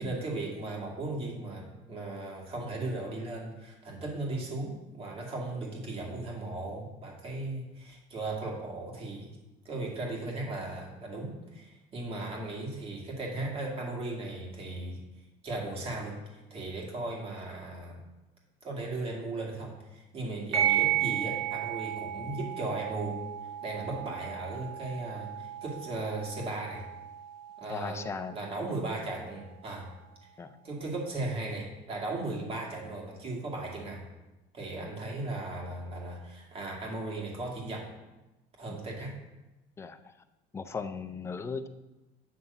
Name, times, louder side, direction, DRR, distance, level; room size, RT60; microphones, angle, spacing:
voice 1, 0.0-9.3 9.6-15.0 15.4-18.0 18.6-23.2 23.6-26.8 27.6-29.9 30.6-34.0 34.5-37.9 38.6-39.1, right 2 dB, 30° right, -1 dB, 2.2 m, -37 dB
sound 1, 20.5-29.5, right 11 dB, 55° right, 2.7 m, -34 dB
voice 2, 27.7-28.4 30.4-30.6 34.8-35.0 38.7-38.8 39.8-40.1 40.5-41.7, left 5 dB, 15° left, 9 dB, 0.4 m, -37 dB
8.8 x 3.5 x 6.7 m, 1.0 s
cardioid pair, 145°, 19 cm